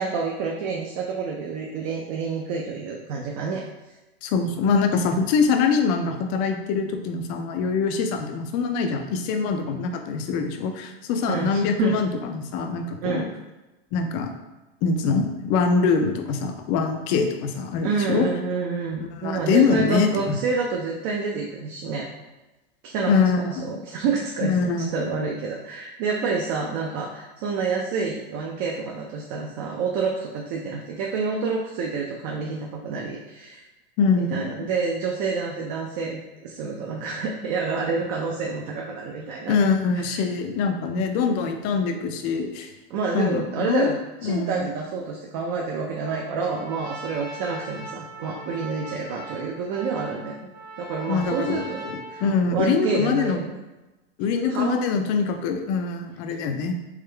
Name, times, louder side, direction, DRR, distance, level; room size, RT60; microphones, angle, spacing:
voice 1, 0.0-3.6 11.3-12.0 13.0-13.3 17.8-22.1 22.8-33.6 34.2-39.5 39.9-40.2 42.9-50.4 50.8-52.2 52.5-53.5 54.5-54.8, right 4 dB, 35° right, 0 dB, 0.4 m, -28 dB
voice 2, 4.2-13.3 13.9-14.3 14.8-18.3 19.0-20.4 23.1-23.7 24.4-25.2 34.0-34.6 39.5-42.7 43.1-43.9 44.2-44.7 51.1-53.4 54.2-56.7, left 5 dB, 30° left, 5 dB, 0.4 m, -24 dB
Trumpet, 45.9-52.7, right 1 dB, 75° right, 1.4 m, -40 dB
3.7 x 3.3 x 3.2 m, 1.1 s
supercardioid pair, 155°, 31 cm